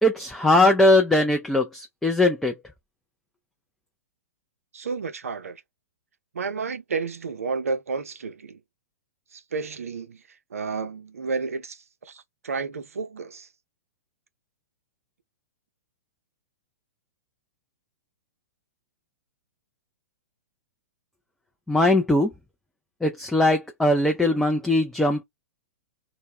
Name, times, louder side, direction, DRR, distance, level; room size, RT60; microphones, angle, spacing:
voice 1, 0.0-2.5 21.7-22.3 23.0-25.2, left 1 dB, 5° left, 0.4 m, -20 dB
voice 2, 4.7-5.6 6.3-8.6 9.3-10.2 10.5-13.5, right 4 dB, 70° right, 0.5 m, -31 dB
2.1 x 2.0 x 3.4 m
figure-of-eight pair, 110°, 8 cm